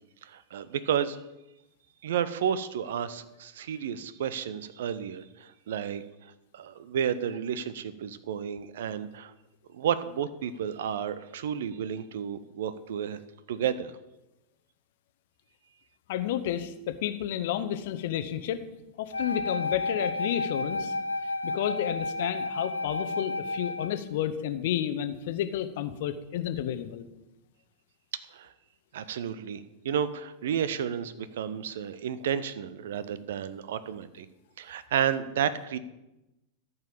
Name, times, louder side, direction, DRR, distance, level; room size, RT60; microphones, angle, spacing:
voice 1, 0.2-1.2 2.0-9.3 9.7-13.2 13.5-13.9 28.3-28.5 28.9-34.3 34.6-35.8, right 8 dB, 60° right, 14 dB, 0.7 m, -32 dB
voice 2, 16.1-18.6 19.0-20.9 21.4-27.1, left 11 dB, 55° left, 11 dB, 0.8 m, -31 dB
Wind instrument woodwind instrument, 19.1-24.0, left 2 dB, 80° left, 0.6 m, -32 dB
13.5 x 5.6 x 6.9 m, 0.94 s
figure-of-eight pair, 90°, 0 cm